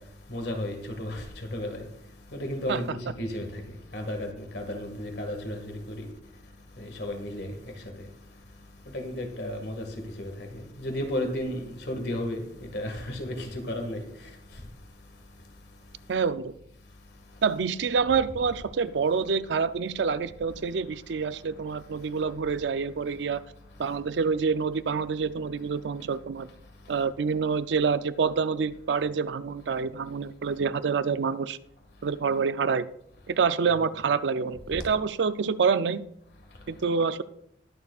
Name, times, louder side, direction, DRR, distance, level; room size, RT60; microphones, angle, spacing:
voice 1, 0.3-1.9 2.3-3.6 3.9-6.1 6.8-7.5 8.9-9.9 10.2-14.1, left 1 dB, 65° left, 1.8 m, -33 dB
voice 2, 16.1-16.5 17.4-23.4 23.8-26.5 26.9-31.6 32.0-32.9 33.3-36.0 36.7-37.2, right 5 dB, 80° right, 0.5 m, -27 dB
19.5 x 6.8 x 2.4 m
head